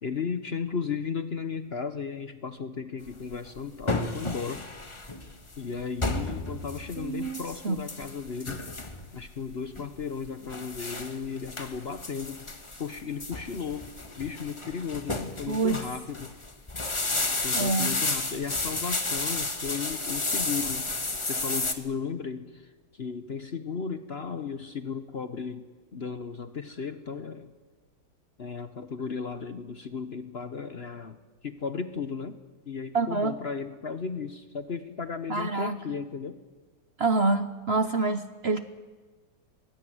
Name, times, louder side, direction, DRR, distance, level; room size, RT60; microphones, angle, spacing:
voice 1, 0.0-4.7 5.6-8.6 9.1-12.5 12.8-13.9 14.2-16.3 17.4-20.9 21.2-25.7 25.9-27.5 28.4-32.4 32.7-36.4, left 6 dB, 45° left, 11 dB, 1.0 m, -35 dB
sound 1, 3.1-21.7, left 2 dB, 20° left, 1.3 m, -32 dB
voice 2, 7.0-7.8 15.5-15.8 17.5-17.9 32.9-33.3 35.3-35.8 37.0-38.6, right 3 dB, 45° right, 10 dB, 0.9 m, -27 dB
22.0 x 17.5 x 9.5 m, 1.3 s
omnidirectional pair, 1.8 m